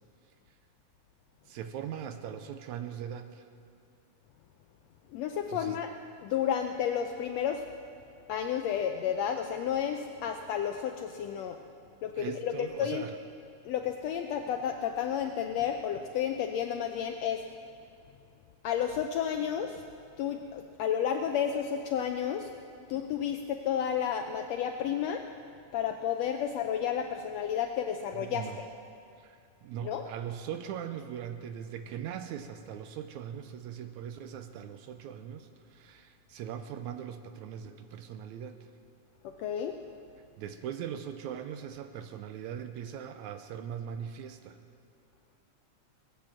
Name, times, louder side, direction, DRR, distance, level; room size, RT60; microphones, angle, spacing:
voice 1, 1.5-3.4 5.5-5.8 12.2-13.2 28.1-28.6 29.2-38.7 40.4-44.6, right 9 dB, 80° right, 8 dB, 1.9 m, -40 dB
voice 2, 5.1-5.9 6.2-7.6 8.3-11.6 12.0-13.0 13.6-17.4 18.6-19.8 20.2-22.5 22.9-25.2 25.7-28.5 29.8-30.0 39.2-39.8, left 9 dB, 80° left, 5 dB, 1.5 m, -31 dB
20.0 x 8.7 x 7.6 m, 2.5 s
omnidirectional pair, 3.6 m